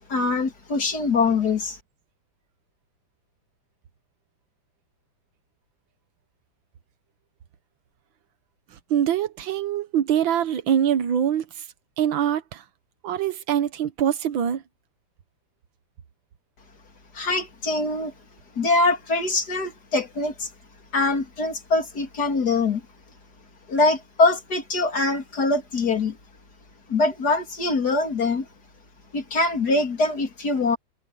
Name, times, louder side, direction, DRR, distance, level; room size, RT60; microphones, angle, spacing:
voice 1, 0.1-1.8 17.1-18.1 18.6-20.5 20.9-22.8 23.7-26.2 26.9-28.5 29.1-30.8, left 3 dB, 55° left, 3.3 m, -23 dB
voice 2, 8.9-11.5 12.0-12.6 13.0-14.6, right 9 dB, 80° right, 1.9 m, -23 dB
omnidirectional pair, 2.1 m